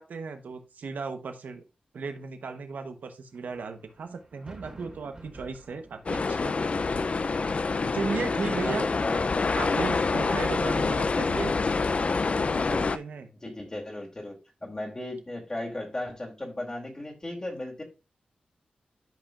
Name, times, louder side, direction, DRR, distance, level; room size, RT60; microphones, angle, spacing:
voice 1, 0.0-1.6 1.9-6.5 7.9-8.9 9.6-11.6 12.3-13.3, right 4 dB, 80° right, 7 dB, 1.0 m, -35 dB
sound 1, 3.3-9.6, right 1 dB, 30° right, 2.7 m, -51 dB
sound 2, 6.1-13.0, left 4 dB, 45° left, 0.5 m, -26 dB
voice 2, 8.4-9.2 13.4-17.8, left 1 dB, 25° left, -1 dB, 2.6 m, -36 dB
12.0 x 5.3 x 2.5 m, 0.28 s
cardioid pair, 75°, 3 cm